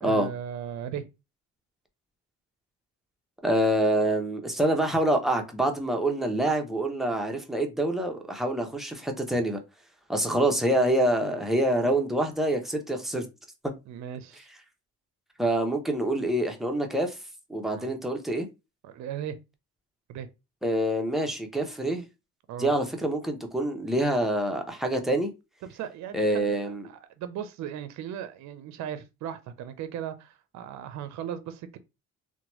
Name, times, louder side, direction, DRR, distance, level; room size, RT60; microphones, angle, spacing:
voice 1, 0.0-1.1 13.9-14.5 17.7-17.9 18.8-19.4 20.1-20.3 22.5-22.7 25.6-31.8, right 9 dB, 70° right, 0.5 m, -37 dB
voice 2, 3.4-9.6 10.1-13.3 15.4-17.2 17.5-18.5 20.6-22.1 22.6-25.3 26.1-26.8, right 1 dB, ahead, 0.6 m, -26 dB
2.9 x 2.2 x 2.9 m
cardioid pair, 90°, 30 cm